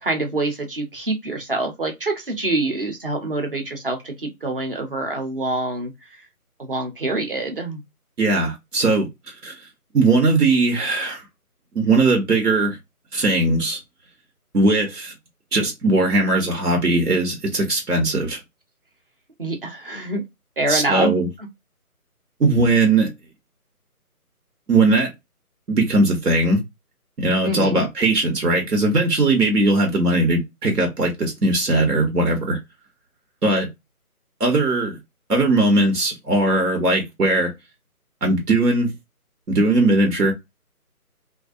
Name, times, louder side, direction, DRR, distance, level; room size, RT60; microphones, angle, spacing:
voice 1, 0.0-5.9 6.6-7.8 19.4-20.2 20.6-21.2 27.4-27.8, right 2 dB, 40° right, 0.7 m, -25 dB
voice 2, 8.2-9.6 9.9-11.2 11.7-12.8 13.1-13.8 14.5-15.1 15.5-18.4 20.7-21.3 22.4-23.1 24.7-25.1 25.7-26.6 27.2-32.6 33.4-33.7 34.4-35.0 35.3-37.5 38.2-38.9 39.5-40.3, right 2 dB, 90° right, 1.2 m, -19 dB
2.5 x 2.2 x 2.5 m
figure-of-eight pair, 160°, 45 cm